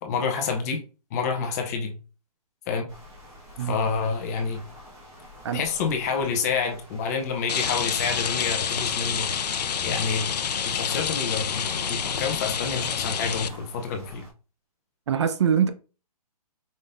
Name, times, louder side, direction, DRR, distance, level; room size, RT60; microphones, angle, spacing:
voice 1, 0.0-0.8 1.1-1.9 2.7-2.9 3.7-4.6 5.5-9.3 9.8-10.3 10.6-14.2, left 5 dB, 25° left, 0.7 m, -28 dB
sound 1, 2.9-14.3, equal, 15° right, 1.3 m, -48 dB
Rain, 7.5-13.5, left 7 dB, 80° left, 0.7 m, -28 dB
voice 2, 15.1-15.7, right 8 dB, 45° right, 0.5 m, -23 dB
5.1 x 3.8 x 2.6 m
hypercardioid pair, 165°, 20 cm